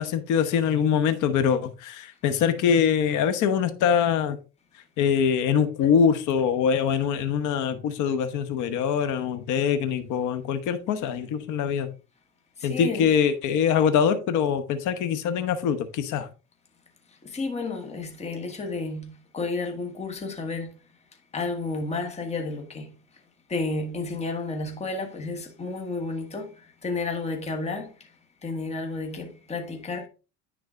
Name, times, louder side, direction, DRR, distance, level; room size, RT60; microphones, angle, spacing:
voice 1, 0.0-4.4 5.0-11.9 12.6-16.3, left 7 dB, 55° left, 1.1 m, -23 dB
voice 2, 12.6-13.1 17.2-20.7 21.3-22.9 23.5-27.9 28.4-30.1, left 3 dB, 20° left, 1.3 m, -31 dB
9.7 x 3.9 x 3.7 m
supercardioid pair, 100°, 35 cm